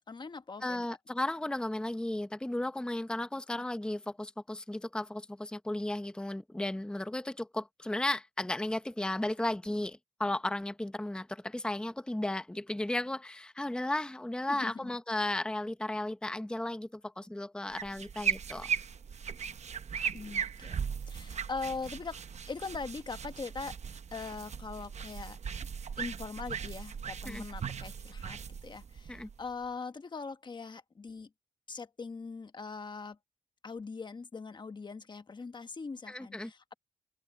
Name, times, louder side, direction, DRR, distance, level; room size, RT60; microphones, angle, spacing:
voice 1, 0.1-1.0 14.5-14.9 20.1-20.8 21.1-22.2 22.5-23.8 24.1-25.4 26.0-31.3 31.7-33.2 33.6-36.7, left 4 dB, 25° left, 1.1 m, -41 dB
voice 2, 0.6-18.7 27.3-27.4 29.1-29.3 36.1-36.5, left 1 dB, 5° left, 0.9 m, -35 dB
sound 1, 17.7-29.7, right 7 dB, 45° right, 0.8 m, -38 dB
open air
wide cardioid pair, 145°, 17 cm